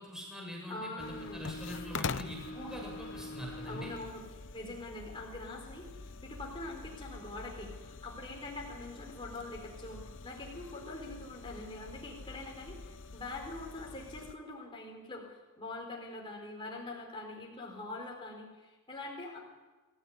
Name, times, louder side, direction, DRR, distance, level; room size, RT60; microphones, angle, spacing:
voice 1, 0.0-3.9, equal, 5° right, -2 dB, 7.5 m, -43 dB
voice 2, 0.7-1.5 3.7-4.2 4.5-19.4, left 2 dB, 25° left, -1 dB, 4.6 m, -44 dB
sound 1, 1.0-14.3, left 4 dB, 55° left, 0.8 m, -44 dB
26.0 x 16.0 x 9.9 m, 1.2 s
head